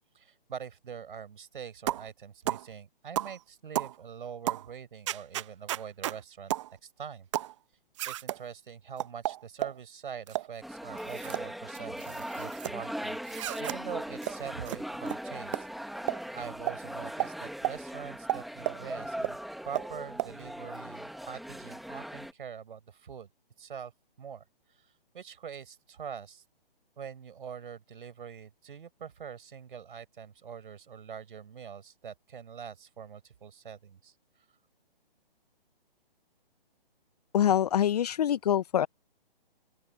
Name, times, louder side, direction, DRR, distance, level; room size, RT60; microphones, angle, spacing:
voice 1, 0.1-6.5 6.8-7.3 8.0-16.0 16.3-19.4 19.6-23.3 23.6-23.9 24.2-24.4 24.7-26.4 27.0-34.1, right 7 dB, 60° right, 5.1 m, -44 dB
sound 1, 1.9-2.1 2.5-2.7 3.2-3.4 3.7-3.9 4.5-4.7 5.1-6.2 6.5-6.7 7.3-7.5 8.0-8.4 9.0-9.8 10.3-10.5 11.0-11.4 11.7-12.7 13.3-13.8 14.2-14.3 14.7-14.8 15.1-15.2 15.5-15.6 16.1-16.2 16.7-16.8 17.2-17.3 17.6-17.8 18.3-18.8 19.2-19.3 19.7-19.9 20.2-20.3, right 14 dB, 30° right, 1.1 m, -32 dB
sound 2, 10.6-22.3, equal, ahead, 1.9 m, -39 dB
voice 2, 37.3-38.9, left 10 dB, 40° left, 0.8 m, -25 dB
open air
figure-of-eight pair, 145°, 30 cm